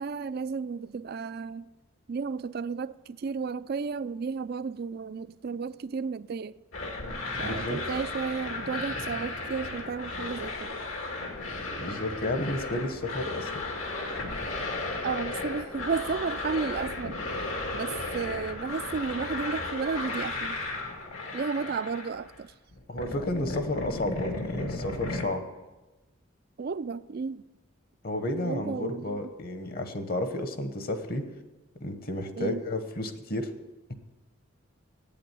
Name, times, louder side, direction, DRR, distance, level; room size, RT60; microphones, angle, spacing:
voice 1, 0.0-1.7 2.1-6.6 7.4-10.8 15.0-17.2 17.7-20.6 21.3-22.5 26.6-27.4 28.4-29.2 32.4-32.6, right 5 dB, 50° right, 0.4 m, -33 dB
sound 1, 6.7-22.4 22.7-25.2, left 2 dB, 85° left, 2.2 m, -35 dB
voice 2, 7.4-7.8 11.8-13.6 22.9-25.4 28.0-31.3 31.8-33.5, left 1 dB, 45° left, 1.0 m, -32 dB
8.8 x 8.6 x 9.2 m
head